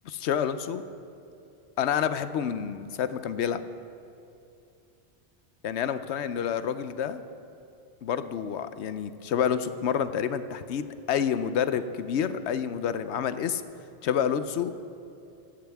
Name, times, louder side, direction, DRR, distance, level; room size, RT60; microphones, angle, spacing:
voice 1, 0.0-0.8 1.8-3.6 5.6-7.2 8.0-13.6 14.0-14.9, left 8 dB, 80° left, 12 dB, 0.9 m, -28 dB
16.5 x 13.5 x 3.5 m, 2.6 s
omnidirectional pair, 1.1 m